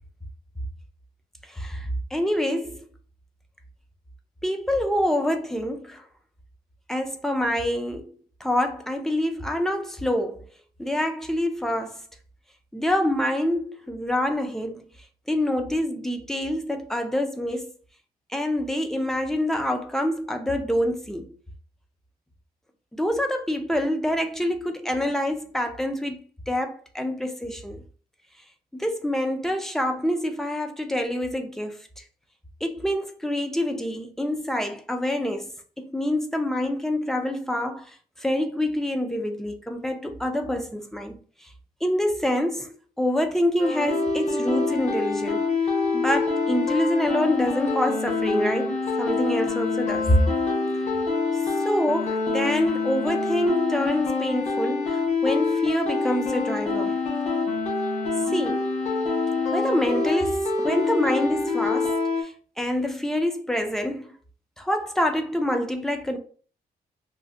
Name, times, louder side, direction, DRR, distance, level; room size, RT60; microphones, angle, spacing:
voice 1, 1.5-2.8 4.4-6.0 6.9-8.1 8.4-10.4 10.8-12.0 12.7-14.8 15.3-17.7 18.3-21.3 22.9-27.8 28.7-32.0 32.6-35.5 35.8-41.2 41.8-42.7 43.0-45.4 45.9-50.2 51.6-57.0 58.3-58.7 59.5-64.1 64.6-66.2, left 1 dB, 5° left, 0.3 m, -26 dB
sound 1, 43.6-62.2, left 4 dB, 45° left, 0.7 m, -26 dB
2.6 x 2.1 x 3.3 m
wide cardioid pair, 165°, 16 cm